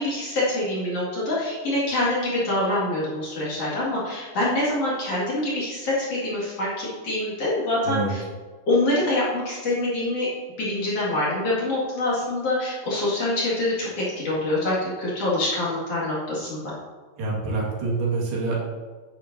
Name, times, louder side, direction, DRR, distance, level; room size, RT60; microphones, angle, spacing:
voice 1, 0.0-8.2 8.7-10.3 10.6-16.7, left 1 dB, 45° left, -7 dB, 2.8 m, -25 dB
voice 2, 17.2-18.6, right 3 dB, 80° right, -4 dB, 4.0 m, -26 dB
10.5 x 9.0 x 2.7 m, 1.4 s
omnidirectional pair, 4.6 m